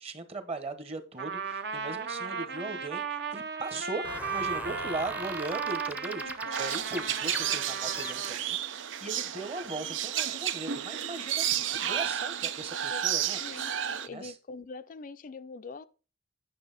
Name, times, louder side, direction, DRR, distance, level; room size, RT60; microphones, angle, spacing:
voice 1, 0.0-13.4 14.1-14.3, right 2 dB, 30° right, 1.1 m, -39 dB
Trumpet, 1.2-8.4, right 5 dB, 60° right, 0.9 m, -36 dB
sound 1, 4.0-8.5, right 1 dB, 10° right, 0.6 m, -40 dB
voice 2, 6.3-6.8 12.9-13.0 13.4-15.8, left 3 dB, 45° left, 0.4 m, -44 dB
sound 2, 6.5-14.1, right 10 dB, 75° right, 0.6 m, -32 dB
9.7 x 6.2 x 4.0 m
head